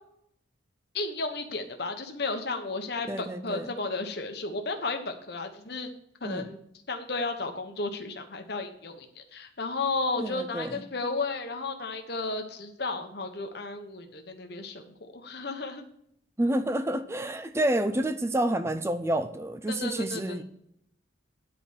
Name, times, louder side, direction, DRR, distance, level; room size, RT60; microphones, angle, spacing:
voice 1, 0.9-5.9 6.2-6.6 6.9-15.8 19.7-20.4, left 3 dB, 55° left, 1.1 m, -33 dB
voice 2, 3.1-3.7 6.2-6.5 10.2-10.8 16.4-20.4, right 1 dB, 15° right, 0.5 m, -29 dB
9.6 x 4.9 x 7.1 m
head